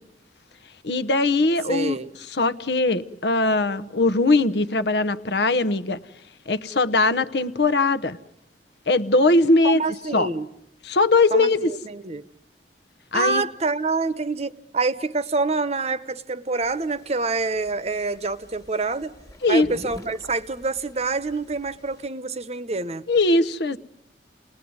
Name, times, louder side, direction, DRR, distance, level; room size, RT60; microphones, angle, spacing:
voice 1, 0.8-2.0 2.3-6.0 6.5-8.2 8.9-9.8 10.1-10.3 10.8-11.7 13.1-13.4 19.4-19.7 23.1-23.8, left 2 dB, 70° left, 1.0 m, -20 dB
voice 2, 1.7-2.1 9.6-10.5 11.3-12.2 13.1-19.1 19.5-23.0, right 3 dB, 40° right, 0.9 m, -26 dB
sound 1, 16.6-22.1, left 1 dB, 20° left, 1.8 m, -46 dB
29.5 x 19.5 x 9.6 m
head